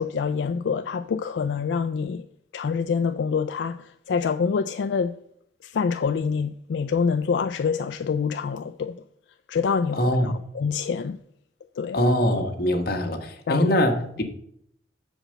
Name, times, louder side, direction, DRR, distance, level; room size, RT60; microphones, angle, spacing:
voice 1, 0.0-2.2 2.5-5.1 5.6-8.9 9.5-11.2 11.8-12.0 13.5-13.7, left 5 dB, 85° left, 0.4 m, -26 dB
voice 2, 9.9-10.3 11.9-14.2, left 1 dB, 55° left, 1.4 m, -23 dB
7.4 x 5.1 x 6.3 m
head